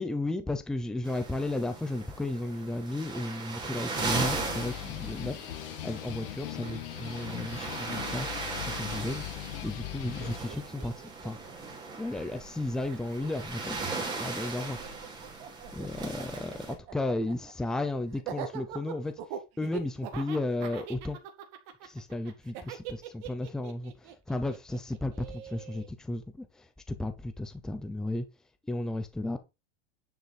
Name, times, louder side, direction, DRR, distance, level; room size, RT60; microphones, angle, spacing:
voice 1, 0.0-8.3 8.7-9.2 9.6-11.4 12.0-14.8 15.7-19.1 19.6-21.2 21.8-28.3 28.6-29.4, left 2 dB, ahead, 0.6 m, -34 dB
sound 1, 1.0-16.7, right 3 dB, 15° right, 2.5 m, -38 dB
sound 2, 4.0-10.4, left 16 dB, 60° left, 1.4 m, -39 dB
Laughter, 9.9-10.0 10.2-12.5 12.8-25.9, right 9 dB, 45° right, 1.9 m, -43 dB
9.8 x 7.1 x 4.1 m
supercardioid pair, 180°, 31 cm